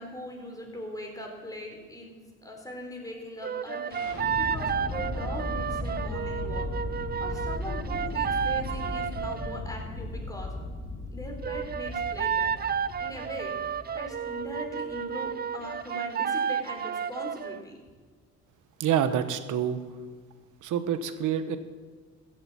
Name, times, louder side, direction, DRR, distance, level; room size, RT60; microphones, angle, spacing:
voice 1, 0.0-4.1 4.3-6.7 7.2-10.5 11.1-12.6 13.0-13.6 13.9-17.8, left 1 dB, 10° left, 1 dB, 4.2 m, -40 dB
sound 1, 3.4-9.6 11.4-17.6, right 8 dB, 30° right, 0.5 m, -31 dB
sound 2, 3.9-15.8, left 2 dB, 70° left, 4.3 m, -37 dB
voice 2, 18.8-19.8 20.6-21.6, right 9 dB, 85° right, 10 dB, 1.2 m, -27 dB
14.5 x 8.0 x 8.6 m, 1.5 s
cardioid pair, 90°, 30 cm